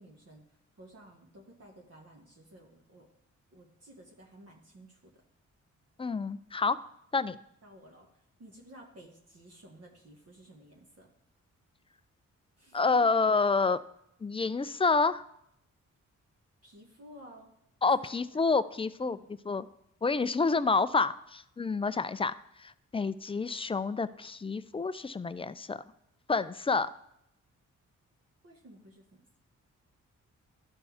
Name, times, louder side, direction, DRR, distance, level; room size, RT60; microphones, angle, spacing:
voice 1, 0.0-3.1 3.5-5.1 7.6-11.1 12.6-13.1 16.6-17.5 17.8-18.4 19.0-19.2 20.4-20.6 28.4-29.2, right 1 dB, 50° right, -1 dB, 1.5 m, -54 dB
voice 2, 6.0-6.8 7.1-7.4 12.7-13.8 14.2-15.2 17.8-19.2 19.5-19.7 20.0-22.3 22.6-25.8 26.3-26.9, left 4 dB, 20° left, 15 dB, 0.4 m, -28 dB
12.5 x 4.3 x 3.5 m, 0.76 s
cardioid pair, 60°, 31 cm